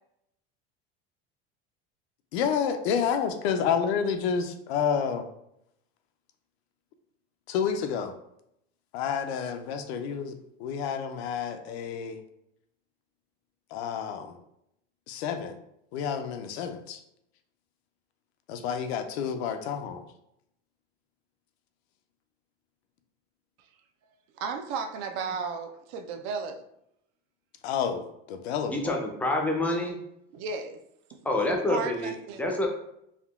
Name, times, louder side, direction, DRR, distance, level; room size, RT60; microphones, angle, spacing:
voice 1, 2.3-5.3 7.5-8.1 8.9-10.3 10.6-12.2 13.7-14.4 15.1-15.6 15.9-17.0 18.5-20.0 27.6-29.0, left 7 dB, 85° left, 7 dB, 0.5 m, -29 dB
voice 2, 24.4-26.6 30.3-30.8 31.1-31.2 31.7-32.4, right 5 dB, 60° right, 7 dB, 0.4 m, -34 dB
voice 3, 28.7-30.0 31.2-32.7, left 1 dB, 5° left, 1 dB, 0.4 m, -27 dB
3.6 x 2.2 x 2.3 m, 0.78 s
supercardioid pair, 125°, 31 cm